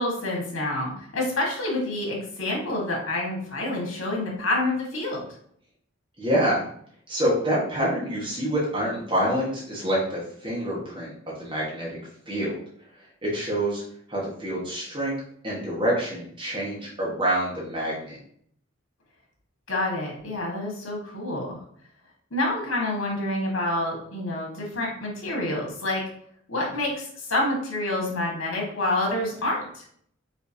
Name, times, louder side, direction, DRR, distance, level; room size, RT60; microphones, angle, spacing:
voice 1, 0.0-5.2 19.7-21.6 22.3-26.0 26.5-29.8, left 1 dB, 85° left, -1 dB, 1.4 m, -28 dB
voice 2, 6.2-6.6 7.1-12.0 12.3-12.5 13.2-13.8 14.1-15.2 15.4-18.2, right 1 dB, 25° right, -5 dB, 1.2 m, -26 dB
5.1 x 3.2 x 2.7 m, 0.63 s
head